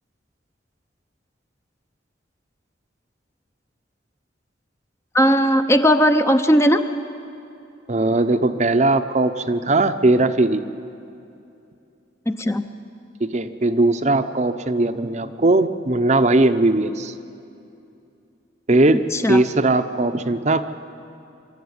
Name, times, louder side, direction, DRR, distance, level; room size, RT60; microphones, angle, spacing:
voice 1, 5.1-6.8 12.3-12.7 19.1-19.4, equal, 15° left, 8 dB, 0.6 m, -17 dB
voice 2, 7.9-10.6 13.2-17.1 18.7-19.0 19.3-20.6, right 2 dB, 35° right, 9 dB, 0.7 m, -19 dB
25.0 x 13.5 x 9.5 m, 2.6 s
head